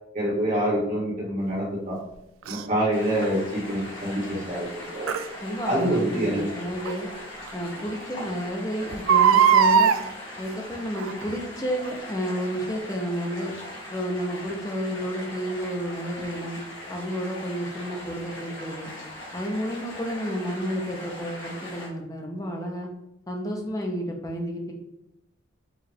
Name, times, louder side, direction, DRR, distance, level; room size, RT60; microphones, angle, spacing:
voice 1, 0.1-2.0 2.4-5.1 5.6-6.4, right 1 dB, 40° right, -5 dB, 1.5 m, -26 dB
Crying sobbing, 2.5-2.6 5.1-5.3 6.8-6.9 7.5-7.6 7.8-7.9 8.9-10.0 11.0-11.3 11.9-12.0, right 7 dB, 80° right, 0.3 m, -19 dB
sound 1, 2.9-21.9, left 1 dB, 65° left, 1.4 m, -40 dB
voice 2, 5.4-7.1 7.5-10.0 10.4-13.6 13.9-16.6 16.9-18.9 19.3-22.9 23.3-24.7, equal, 15° left, 1 dB, 0.6 m, -31 dB
4.6 x 2.4 x 3.4 m, 0.86 s
head